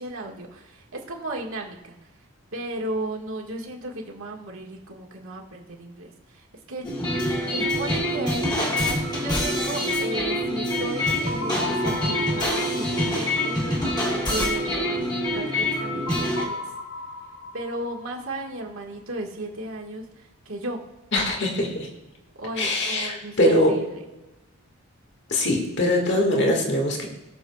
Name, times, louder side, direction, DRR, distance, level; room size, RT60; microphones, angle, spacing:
voice 1, 0.0-16.8 17.5-20.8 22.4-24.0, right 1 dB, 65° right, 0 dB, 1.7 m, -35 dB
sound 1, 6.8-16.4, left 1 dB, 20° left, 2.1 m, -25 dB
sound 2, 7.1-18.8, left 2 dB, 70° left, 3.4 m, -38 dB
voice 2, 21.1-21.9 22.6-23.7 25.3-27.1, left 1 dB, 50° left, 1 dB, 1.8 m, -22 dB
20.5 x 7.0 x 2.3 m, 1.1 s
head